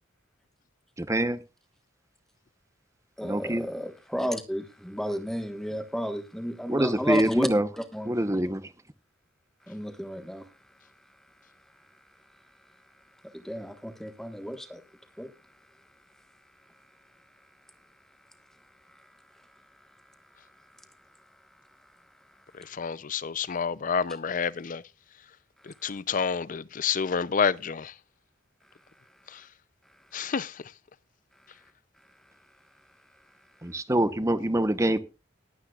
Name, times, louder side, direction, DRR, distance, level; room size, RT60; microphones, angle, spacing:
voice 1, 1.0-1.4 3.2-3.7 6.7-7.7 8.0-8.6 33.6-35.0, right 1 dB, 15° right, 0.9 m, -25 dB
voice 2, 3.2-7.5 7.9-8.1 9.7-10.4 13.4-14.8 15.2-15.3, equal, ahead, 1.3 m, -32 dB
voice 3, 22.5-24.8 25.6-27.9 29.3-29.4 30.1-30.6, left 6 dB, 40° left, 0.5 m, -29 dB
20.0 x 9.0 x 2.4 m
head